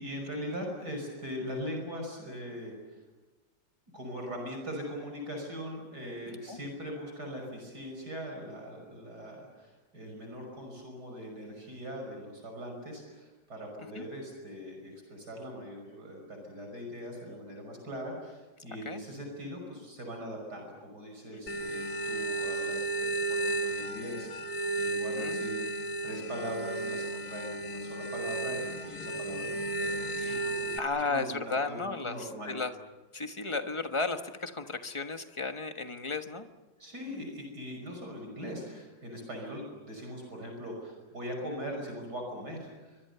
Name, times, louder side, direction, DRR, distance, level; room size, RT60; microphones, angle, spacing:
voice 1, 0.0-3.0 3.9-32.6 36.8-43.0, equal, 50° right, 2 dB, 6.3 m, -41 dB
sound 1, 21.5-30.8, right 2 dB, 50° left, 2.2 m, -33 dB
voice 2, 25.1-25.5 30.2-30.5 30.8-32.7 33.1-36.5, left 3 dB, 20° left, 7 dB, 1.0 m, -34 dB
29.0 x 24.5 x 6.9 m, 1.2 s
omnidirectional pair, 2.2 m